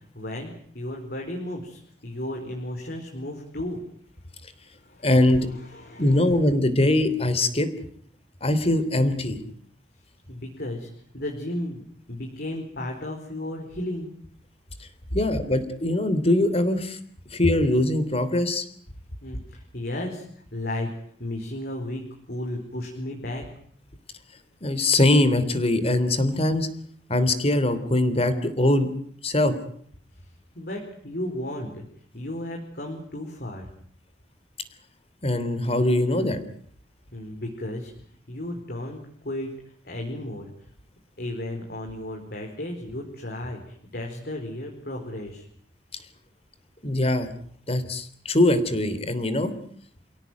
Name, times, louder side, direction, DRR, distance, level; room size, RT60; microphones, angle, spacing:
voice 1, 0.1-3.8 4.8-6.3 10.3-10.9 11.1-14.1 19.2-20.9 21.2-22.0 22.3-23.5 30.5-31.8 32.1-33.7 37.1-37.9 38.3-39.5 39.8-40.5 41.2-45.4, left 1 dB, 60° left, 1 dB, 4.7 m, -34 dB
voice 2, 5.0-5.5 6.0-7.7 8.4-9.4 14.8-14.9 15.1-17.0 17.3-18.6 24.6-26.7 27.1-28.9 29.2-29.5 35.2-36.4 46.8-47.3 47.7-49.5, left 1 dB, 35° left, 12 dB, 3.3 m, -22 dB
29.5 x 17.0 x 9.4 m, 0.62 s
head